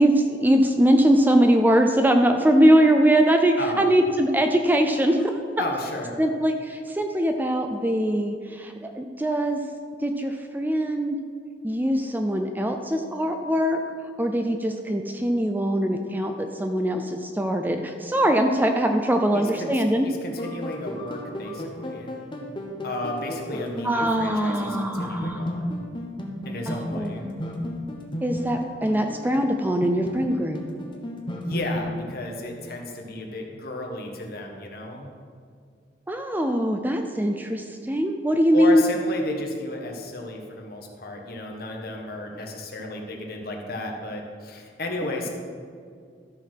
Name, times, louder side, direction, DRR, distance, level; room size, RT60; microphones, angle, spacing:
voice 1, 0.0-5.3 6.2-9.6 10.0-11.2 11.6-13.8 14.2-20.1 23.8-25.4 26.7-27.1 28.2-30.6 36.1-38.9, right 1 dB, 10° right, 5 dB, 0.4 m, -22 dB
voice 2, 3.6-3.9 5.6-6.2 19.3-22.2 22.8-25.8 26.4-27.3 31.4-35.1 38.5-45.3, left 2 dB, 55° left, 1 dB, 1.4 m, -33 dB
sound 1, 20.3-31.8, left 1 dB, 25° left, 1.0 m, -33 dB
13.0 x 4.7 x 6.0 m, 2.2 s
head